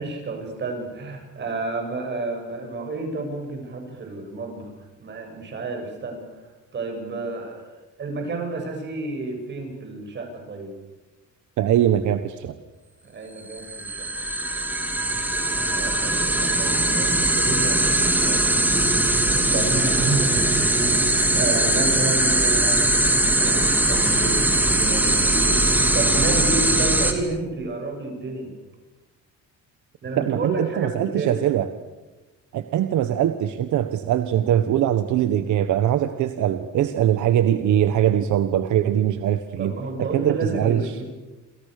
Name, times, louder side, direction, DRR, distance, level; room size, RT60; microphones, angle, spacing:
voice 1, 0.0-10.7 13.0-14.1 15.7-21.0 21.3-22.9 23.4-25.6 25.9-28.5 30.0-31.4 39.6-41.0, right 3 dB, 35° right, 3 dB, 7.8 m, -31 dB
voice 2, 11.6-12.5 30.2-31.7 32.5-39.7 40.1-40.8, right 11 dB, 70° right, 9 dB, 1.4 m, -22 dB
sound 1, 13.5-27.1, right 1 dB, 5° right, 2.9 m, -20 dB
28.5 x 28.0 x 6.8 m, 1.1 s
cardioid pair, 165°, 30 cm